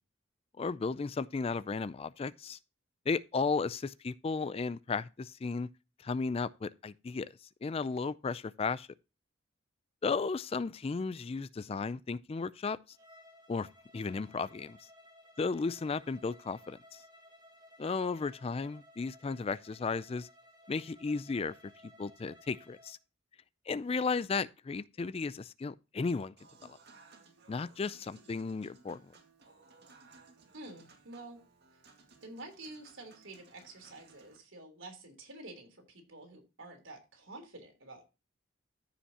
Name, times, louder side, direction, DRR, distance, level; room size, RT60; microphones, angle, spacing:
voice 1, 0.6-2.6 3.1-5.7 6.0-7.3 7.6-8.9 10.0-12.8 13.5-13.7 13.9-14.8 15.4-17.0 17.8-20.3 20.7-21.5 22.0-23.0 23.7-26.3 27.5-29.0, left 4 dB, 30° left, 0.3 m, -34 dB
Bowed string instrument, 12.9-23.0, left 1 dB, 25° right, 1.7 m, -59 dB
Human voice / Acoustic guitar / Piano, 26.4-34.4, right 4 dB, 55° right, 2.0 m, -60 dB
voice 2, 30.5-31.4 32.2-38.0, right 2 dB, 75° right, 3.4 m, -49 dB
14.0 x 5.7 x 2.8 m
head